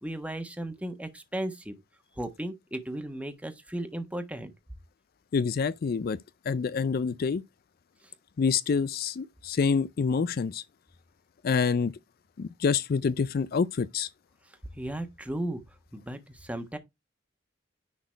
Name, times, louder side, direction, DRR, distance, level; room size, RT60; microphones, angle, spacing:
voice 1, 0.0-1.8 2.2-4.5 8.0-8.1 14.7-15.6 15.9-16.8, right 1 dB, 5° right, 1.4 m, -35 dB
voice 2, 5.3-6.2 6.5-7.4 8.4-10.6 11.4-11.9 12.4-14.1, left 5 dB, 50° left, 0.4 m, -27 dB
10.5 x 4.0 x 4.4 m
head